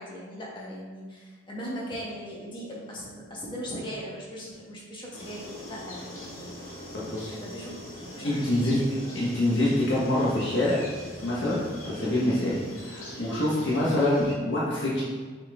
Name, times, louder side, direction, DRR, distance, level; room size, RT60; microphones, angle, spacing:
voice 1, 0.0-6.8 7.3-8.9 12.3-12.5 13.2-13.4, equal, 25° left, -5 dB, 1.4 m, -39 dB
sound 1, 5.1-14.3, equal, 85° left, 1.9 m, -42 dB
voice 2, 6.9-7.3 8.2-8.8 9.1-10.8 11.2-12.5 12.8-15.0, left 1 dB, 65° left, -7 dB, 1.3 m, -25 dB
6.3 x 4.6 x 3.5 m, 1.5 s
head